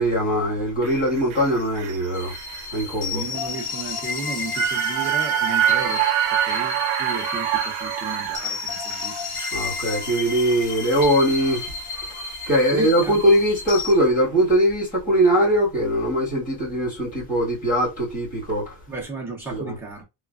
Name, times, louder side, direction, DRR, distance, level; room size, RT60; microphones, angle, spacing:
voice 1, 0.0-2.3 2.7-3.2 9.5-11.7 12.5-18.8 19.5-19.8, right 1 dB, 15° left, 1.4 m, -21 dB
sound 1, 0.8-13.2 13.5-13.6, right 10 dB, 65° right, 0.6 m, -28 dB
sound 2, 2.1-13.9, left 5 dB, 60° left, 1.5 m, -32 dB
voice 2, 3.1-6.0 6.3-9.6 12.7-13.3 18.9-20.0, right 3 dB, 5° right, 0.3 m, -34 dB
3.1 x 2.2 x 2.2 m
cardioid pair, 170°, 47 cm